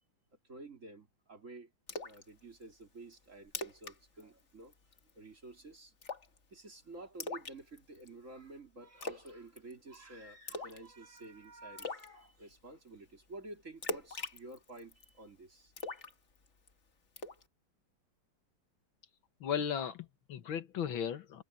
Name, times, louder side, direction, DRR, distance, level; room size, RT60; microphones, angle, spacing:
voice 1, 0.5-1.7 2.0-4.7 5.2-5.9 6.5-16.0, right 2 dB, 40° right, 3.9 m, -51 dB
Splash splatter, 1.9-2.2 2.6-2.7 3.1-3.2 3.5-3.9 4.2-4.4 4.7-5.1 6.0-6.4 7.2-8.1 9.0-9.3 9.6-9.9 10.5-10.9 11.2-11.3 11.8-12.1 13.8-15.1 15.8-16.7 17.2-17.4, left 3 dB, 35° left, 1.8 m, -41 dB
voice 2, 19.4-21.4, left 8 dB, 85° left, 2.1 m, -36 dB
omnidirectional pair, 2.1 m